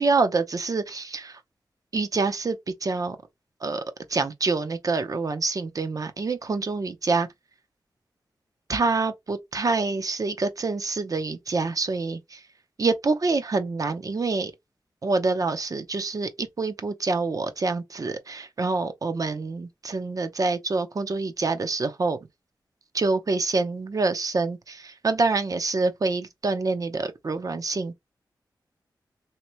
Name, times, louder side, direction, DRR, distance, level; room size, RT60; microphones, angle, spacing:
voice 1, 0.0-1.4 1.9-3.2 3.6-3.8 4.1-7.3 8.7-12.4 12.8-14.5 15.0-22.2 22.9-27.9, right 3 dB, 50° right, 0.7 m, -26 dB
3.5 x 2.9 x 3.0 m
wide cardioid pair, 90°, 8 cm